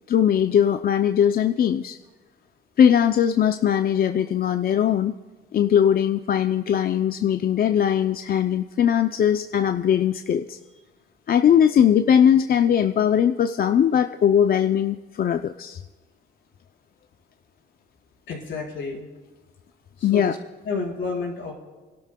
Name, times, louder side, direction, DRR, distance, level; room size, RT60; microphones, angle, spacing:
voice 1, 0.1-2.0 2.8-5.2 5.5-10.6 11.3-15.8 20.0-20.3, left 9 dB, 50° left, 8 dB, 0.5 m, -20 dB
voice 2, 18.3-19.1 20.0-20.4 20.6-21.5, left 4 dB, 70° left, -2 dB, 4.3 m, -30 dB
29.0 x 12.5 x 2.2 m, 1.3 s
cardioid pair, 90°, 20 cm